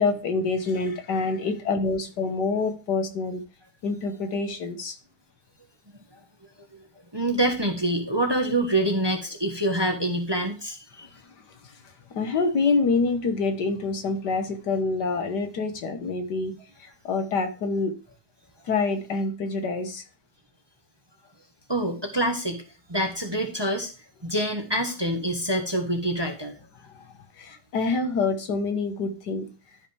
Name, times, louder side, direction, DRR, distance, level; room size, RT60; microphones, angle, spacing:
voice 1, 0.0-3.4 3.8-4.9 11.6-11.7 12.1-16.5 16.8-17.9 18.7-20.0 26.8-29.5, left 4 dB, 75° left, 6 dB, 1.9 m, -26 dB
voice 2, 7.1-11.1 21.7-22.6 22.9-23.9 24.2-26.5, right 1 dB, 15° right, 3 dB, 1.2 m, -26 dB
13.0 x 5.4 x 3.4 m, 0.35 s
omnidirectional pair, 1.8 m